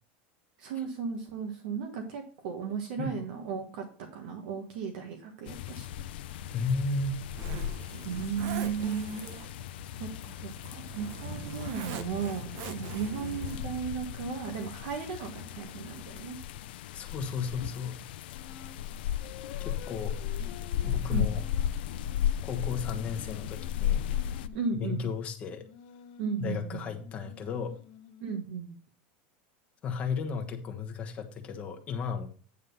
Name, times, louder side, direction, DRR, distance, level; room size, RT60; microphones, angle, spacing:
voice 1, 0.6-3.8 4.1-5.9 8.0-9.2 10.0-16.4 20.8-21.3 24.5-25.0 26.2-26.9 28.2-28.7, right 6 dB, 65° right, 3 dB, 1.4 m, -35 dB
sound 1, 5.5-24.5, left 10 dB, 90° left, 0.5 m, -35 dB
Zipper (clothing), 6.4-13.8, right 7 dB, 50° right, 0.8 m, -43 dB
voice 2, 6.5-7.2 7.7-7.9 16.9-18.0 19.6-20.1 20.8-21.4 22.4-24.0 24.7-25.6 26.4-27.7 29.8-32.3, left 5 dB, 25° left, 4 dB, 1.2 m, -34 dB
sound 2, 18.3-18.8 19.2-24.8 25.5-28.5, left 8 dB, 55° left, 1.0 m, -50 dB
9.5 x 3.7 x 6.8 m, 0.41 s
supercardioid pair, 170°, 5 cm